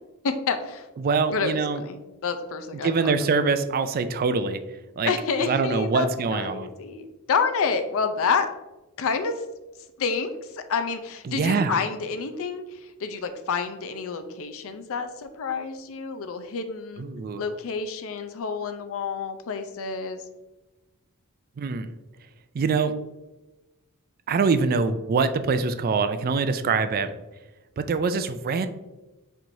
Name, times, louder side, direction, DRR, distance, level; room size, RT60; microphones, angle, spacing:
voice 1, 0.2-0.9 1.3-3.1 5.0-8.5 9.0-9.3 10.0-12.6 13.0-17.0 17.4-20.2, left 5 dB, 65° left, 9 dB, 0.5 m, -28 dB
voice 2, 1.0-1.8 2.8-4.6 5.0-5.1 5.5-6.7 11.3-11.8 17.0-17.4 21.6-21.9 22.5-22.9 24.3-27.1 27.8-28.7, right 4 dB, 40° right, 11 dB, 0.3 m, -24 dB
4.6 x 4.3 x 2.6 m, 1.1 s
head